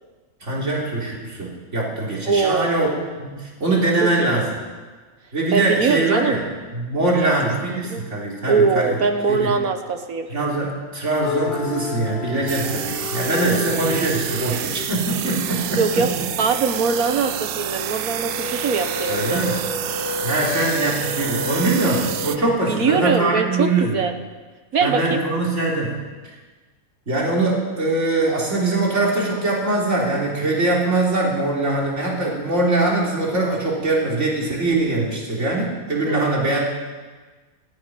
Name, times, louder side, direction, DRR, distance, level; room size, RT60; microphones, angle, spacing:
voice 1, 0.4-2.9 3.2-4.5 5.3-6.4 6.7-9.0 9.3-9.5 10.3-16.1 19.1-19.6 20.2-23.9 24.8-26.0 27.1-36.6, right 2 dB, 35° right, -3 dB, 3.8 m, -22 dB
voice 2, 2.2-2.8 4.0-4.5 5.5-6.4 7.1-7.3 7.7-8.0 8.4-10.3 15.8-16.1 16.4-19.4 22.7-24.1 24.7-25.2 36.0-36.2, right 5 dB, 55° right, 7 dB, 1.4 m, -22 dB
sound 1, 11.2-16.1 18.1-22.4, left 4 dB, 65° left, 2.2 m, -31 dB
sound 2, 12.5-22.4, right 11 dB, 75° right, 1.4 m, -29 dB
15.5 x 9.5 x 9.9 m, 1.4 s
omnidirectional pair, 2.1 m